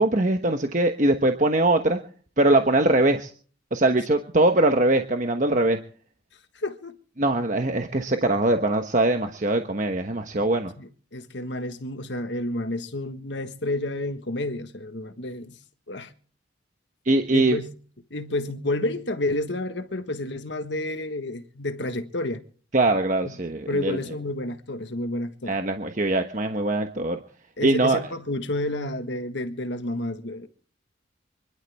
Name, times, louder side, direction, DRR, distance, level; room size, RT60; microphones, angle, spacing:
voice 1, 0.0-2.0 2.4-3.3 3.7-5.8 7.2-10.7 17.1-17.6 22.7-24.0 25.5-27.2 27.6-28.0, right 2 dB, 40° right, 1.1 m, -22 dB
voice 2, 6.5-6.9 10.8-15.6 15.9-16.1 17.3-17.7 18.1-22.4 23.2-23.3 23.7-25.6 27.6-30.5, left 1 dB, 70° left, 1.5 m, -30 dB
26.0 x 11.5 x 3.5 m
head